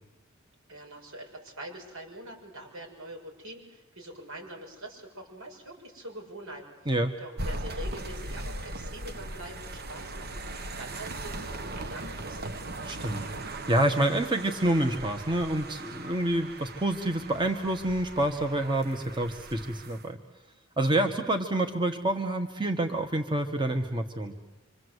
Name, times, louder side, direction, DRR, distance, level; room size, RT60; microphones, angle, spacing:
voice 1, 0.7-6.7 7.2-10.4 10.8-12.6, right 1 dB, 80° right, 1 dB, 6.8 m, -44 dB
sound 1, 7.4-20.1, right 2 dB, 50° right, 1.1 m, -39 dB
voice 2, 12.9-20.2 20.8-24.3, right 1 dB, 25° right, 6 dB, 1.4 m, -28 dB
27.0 x 25.5 x 8.1 m, 1.0 s
head